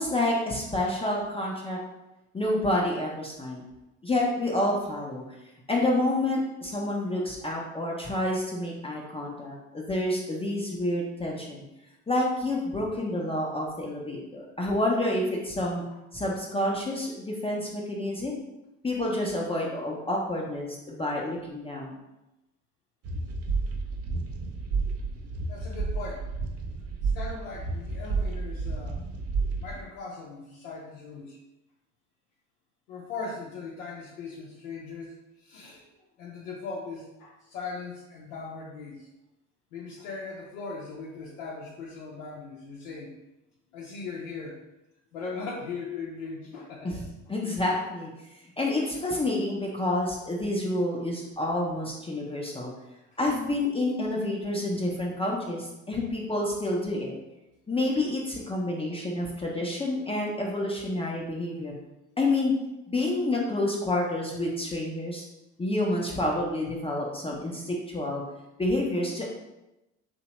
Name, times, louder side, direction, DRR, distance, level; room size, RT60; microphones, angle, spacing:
voice 1, 0.0-1.8 2.3-3.6 4.0-5.2 5.7-11.6 12.1-15.8 16.1-18.4 18.8-22.0 46.8-48.1 48.6-52.7 53.2-57.1 57.7-61.7 62.2-62.5 62.9-65.2 65.6-68.2 68.6-69.2, left 1 dB, 15° left, -3 dB, 0.5 m, -28 dB
sound 1, 23.0-29.8, right 4 dB, 40° right, 0.5 m, -31 dB
voice 2, 25.5-26.3 27.0-29.0 29.6-31.4 32.9-35.9 36.2-39.1 39.7-43.1 43.7-44.5 45.1-46.9, left 4 dB, 80° left, -4 dB, 0.5 m, -39 dB
2.8 x 2.1 x 2.8 m, 0.95 s
hypercardioid pair, 55°, 39 cm